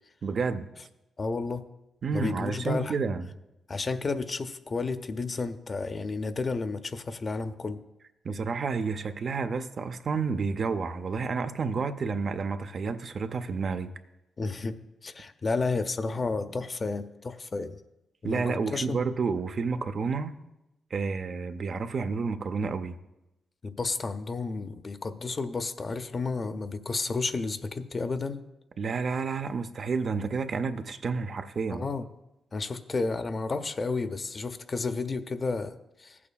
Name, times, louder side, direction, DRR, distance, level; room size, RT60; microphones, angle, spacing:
voice 1, 0.2-0.7 2.0-3.3 8.2-13.9 18.2-20.3 20.9-23.0 28.8-31.9, right 5 dB, 50° right, 9 dB, 0.5 m, -30 dB
voice 2, 1.2-1.7 2.1-3.0 3.7-7.8 14.4-17.8 18.2-19.0 23.6-28.4 31.7-32.0 32.5-36.2, left 3 dB, 40° left, 9 dB, 0.5 m, -32 dB
15.5 x 8.4 x 2.3 m, 0.93 s
cardioid pair, 85°, 0 cm